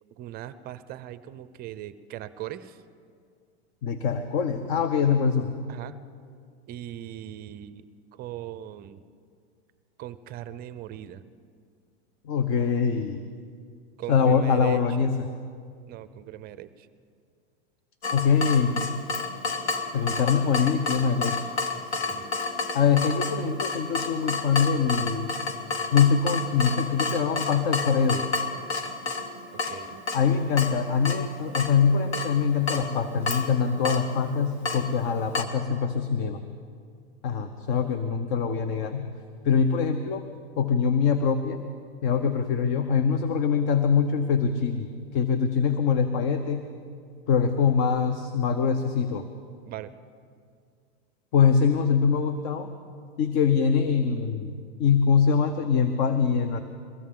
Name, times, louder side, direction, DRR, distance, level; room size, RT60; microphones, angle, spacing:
voice 1, 0.2-2.8 5.7-6.0 6.7-7.8 8.1-9.0 10.0-11.2 14.0-15.1 15.9-16.9 21.9-22.3 29.5-30.0 49.7-49.9, right 12 dB, 30° right, 13 dB, 0.5 m, -39 dB
voice 2, 3.8-5.5 12.2-13.2 14.1-15.3 18.1-19.0 19.9-21.4 22.7-25.3 25.9-28.2 30.1-36.4 37.2-39.1 39.4-40.2 40.6-41.6 42.0-46.6 47.3-49.2 51.3-52.7 53.2-54.5 54.8-56.6, left 6 dB, 50° left, 9 dB, 0.9 m, -23 dB
Water tap faucet / Drip, 18.0-35.4, left 3 dB, 85° left, 1.6 m, -31 dB
22.5 x 16.0 x 3.7 m, 2.2 s
supercardioid pair, 130°, 32 cm